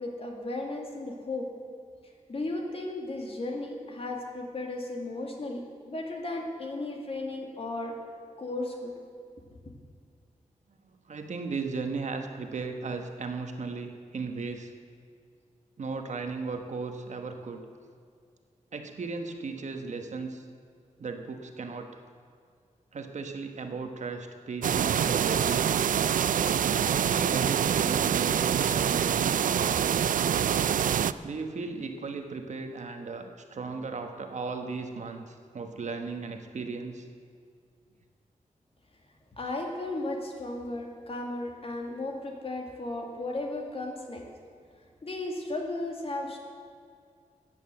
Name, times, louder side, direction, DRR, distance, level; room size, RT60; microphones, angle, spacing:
voice 1, 0.0-1.5 2.3-8.0 8.4-8.9 39.4-44.3 45.0-46.4, left 2 dB, 45° left, 1 dB, 2.1 m, -35 dB
voice 2, 11.1-14.7 15.8-17.6 18.7-20.4 21.0-22.0 22.9-25.9 26.9-30.2 31.2-37.1, right 4 dB, 60° right, 5 dB, 1.3 m, -36 dB
sound 1, 24.6-31.1, right 8 dB, 85° right, 0.4 m, -25 dB
14.5 x 9.3 x 7.7 m, 2.2 s
wide cardioid pair, 140°, 13 cm